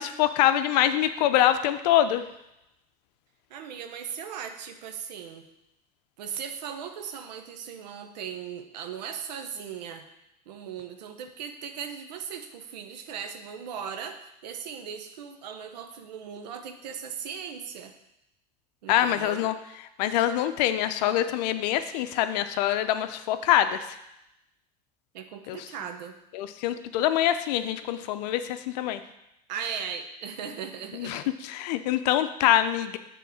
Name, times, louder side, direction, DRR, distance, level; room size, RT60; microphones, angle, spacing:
voice 1, 0.0-2.2 18.9-19.5 20.0-24.0 25.5-25.6 26.3-29.0 31.0-33.0, left 12 dB, 75° left, 11 dB, 0.6 m, -24 dB
voice 2, 3.5-5.5 6.2-10.1 10.5-17.9 18.8-19.5 25.1-26.2 29.5-31.2, right 7 dB, 85° right, 7 dB, 0.9 m, -38 dB
6.9 x 3.8 x 6.3 m, 0.85 s
supercardioid pair, 95°, 21 cm